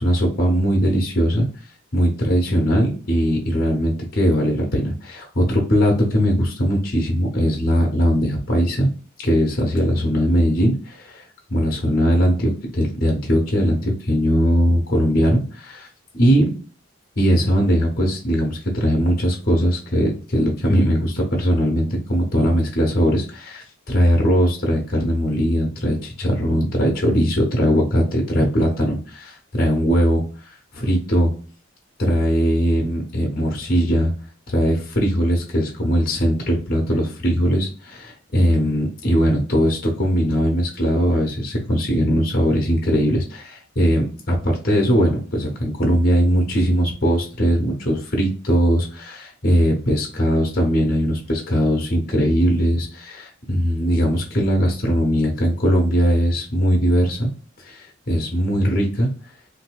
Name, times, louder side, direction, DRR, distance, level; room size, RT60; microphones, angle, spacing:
voice 1, 0.0-1.5 1.9-8.9 9.2-11.2 11.5-15.9 16.1-16.5 17.2-30.2 30.7-31.3 32.0-34.1 34.5-37.7 38.3-57.3 57.6-59.1, equal, 45° left, 1 dB, 0.8 m, -20 dB
3.9 x 2.7 x 2.3 m, 0.40 s
head